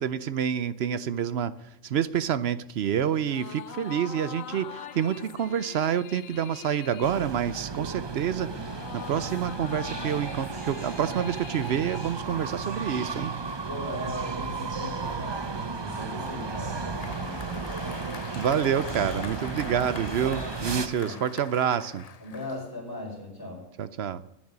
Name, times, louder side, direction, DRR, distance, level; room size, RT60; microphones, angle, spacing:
voice 1, 0.0-1.5 1.8-13.3 18.3-22.0 23.8-24.2, right 9 dB, 60° right, 15 dB, 0.8 m, -28 dB
sound 1, 3.1-12.9, left 10 dB, 80° left, 1.1 m, -43 dB
sound 2, 7.0-20.9, right 4 dB, 30° right, 0.5 m, -34 dB
voice 2, 13.6-18.0 20.7-21.2 22.2-23.6, left 1 dB, 15° left, -2 dB, 4.9 m, -39 dB
Applause, 15.9-23.0, left 6 dB, 45° left, 0.5 m, -44 dB
10.5 x 9.5 x 9.4 m, 0.82 s
omnidirectional pair, 1.3 m